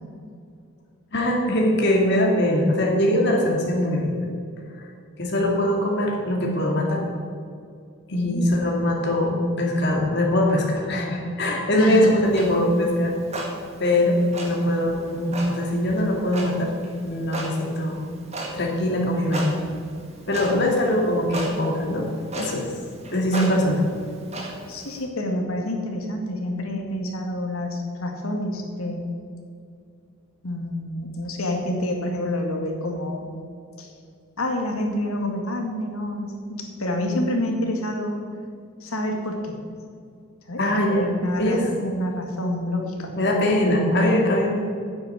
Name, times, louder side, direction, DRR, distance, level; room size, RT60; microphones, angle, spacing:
voice 1, 1.1-4.1 4.8-4.9 5.2-7.0 8.1-13.1 13.8-16.7 17.0-18.0 18.5-19.5 20.3-22.1 22.3-22.7 23.1-23.9 40.6-41.1 41.4-41.7 43.2-44.5, left 1 dB, 50° left, -1 dB, 2.4 m, -22 dB
voice 2, 8.1-8.5 11.7-12.2 14.0-14.2 20.5-20.6 24.7-29.1 30.4-33.3 33.8-33.9 34.4-38.2 38.8-39.6 40.5-40.6 40.9-43.1, left 1 dB, 80° left, 2 dB, 2.1 m, -28 dB
Clock, 12.3-25.0, right 1 dB, 30° right, 2.0 m, -37 dB
9.5 x 7.8 x 8.6 m, 2.3 s
head